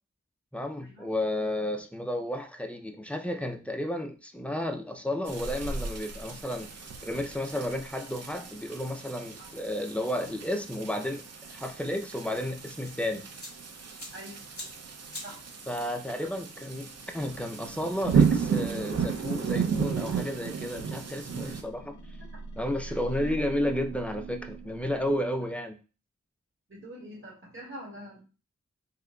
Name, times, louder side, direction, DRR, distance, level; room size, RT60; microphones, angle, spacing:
voice 1, 0.5-6.7 7.0-11.2 11.5-13.3 15.7-16.9 17.1-21.9 22.6-25.8, left 1 dB, 5° left, 5 dB, 0.4 m, -32 dB
sound 1, 5.3-21.6, right 6 dB, 60° right, 0.5 m, -33 dB
sound 2, 12.8-19.3, left 1 dB, 50° left, 1.3 m, -50 dB
voice 2, 14.1-14.5 15.2-15.5 16.3-16.4 21.4-21.6 22.3-22.4 26.7-28.2, equal, 45° right, -4 dB, 1.8 m, -45 dB
sound 3, 20.4-25.4, right 4 dB, 85° left, 0.5 m, -42 dB
3.8 x 2.8 x 2.2 m, 0.34 s
wide cardioid pair, 95°, 29 cm